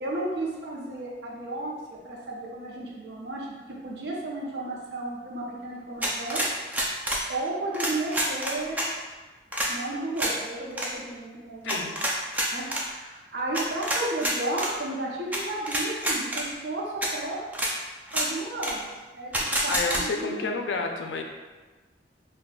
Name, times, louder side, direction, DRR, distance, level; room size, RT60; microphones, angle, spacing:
voice 1, 0.0-3.5 3.8-6.5 7.3-8.9 9.7-11.9 12.5-17.5 18.1-18.9 19.1-20.6, right 2 dB, 65° right, -3 dB, 0.6 m, -33 dB
sound 1, 6.0-7.2 7.7-8.9 9.5-9.7 10.2-10.3 10.7-10.9 11.7-12.8 13.5-14.7 15.3-15.4 15.7-16.4 17.0-17.1 17.5-17.7 18.1-18.3 18.6-18.7 19.3-20.0, right 1 dB, 10° right, 0.3 m, -27 dB
voice 2, 11.6-11.9 19.7-21.2, left 4 dB, 80° left, 3 dB, 0.4 m, -30 dB
3.6 x 2.2 x 2.3 m, 1.3 s
head